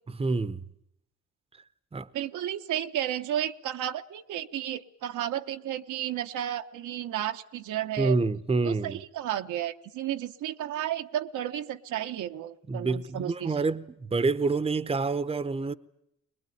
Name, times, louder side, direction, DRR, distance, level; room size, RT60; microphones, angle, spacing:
voice 1, 0.1-0.6 1.9-2.1 8.0-9.0 12.7-15.7, right 3 dB, 20° right, 0.9 m, -27 dB
voice 2, 2.1-8.2 8.6-13.6, right 11 dB, 80° right, 1.1 m, -33 dB
22.0 x 21.0 x 9.3 m
cardioid pair, 90°, 30 cm